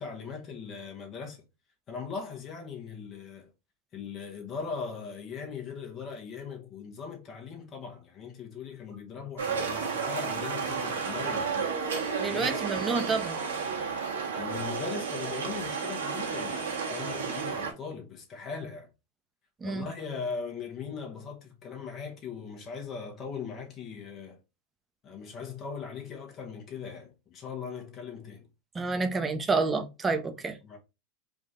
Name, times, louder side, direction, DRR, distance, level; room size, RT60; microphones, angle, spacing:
voice 1, 0.0-1.4 1.9-3.5 3.9-12.6 14.4-18.9 19.6-24.4 25.0-28.5 30.6-30.8, left 5 dB, 35° left, 1.1 m, -39 dB
sound 1, 9.4-17.7, right 5 dB, 85° right, 1.4 m, -32 dB
voice 2, 12.2-13.4 19.6-19.9 28.7-30.6, right 4 dB, 20° right, 0.8 m, -29 dB
3.7 x 2.6 x 3.6 m
hypercardioid pair, 100°, 0 cm